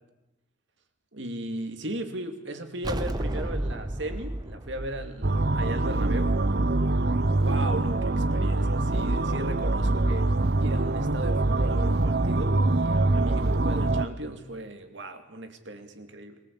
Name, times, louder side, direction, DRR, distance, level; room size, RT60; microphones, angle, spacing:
voice 1, 1.1-6.4 7.4-16.4, right 1 dB, 70° right, 6 dB, 2.5 m, -37 dB
sound 1, 2.8-6.3, right 1 dB, 20° right, 0.9 m, -33 dB
sound 2, 5.2-14.1, right 2 dB, 55° right, 0.8 m, -24 dB
23.5 x 19.0 x 8.5 m, 0.97 s
head